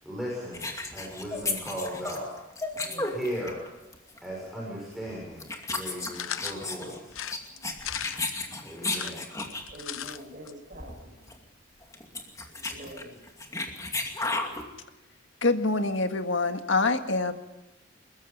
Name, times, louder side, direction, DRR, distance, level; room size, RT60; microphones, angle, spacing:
voice 1, 0.0-2.3 3.1-3.6 4.2-7.2 8.6-9.2, equal, ahead, -4 dB, 6.1 m, -37 dB
sound 1, 0.5-3.7 3.9-4.2 4.9-5.1 5.4-9.7 10.0-10.2 10.5-10.6 10.7-11.0 11.3-11.4 11.8-14.7, left 3 dB, 15° left, 2.5 m, -33 dB
voice 2, 2.8-3.2 9.7-11.2 12.5-13.2, equal, 40° right, 3 dB, 6.1 m, -44 dB
sound 2, 6.1-6.6 7.1-8.4 8.8-10.2 10.5-10.6 10.8-10.9, left 10 dB, 85° left, 0.8 m, -37 dB
voice 3, 15.4-17.3, left 3 dB, 70° left, 7 dB, 1.8 m, -25 dB
22.5 x 21.5 x 5.4 m, 1.0 s
head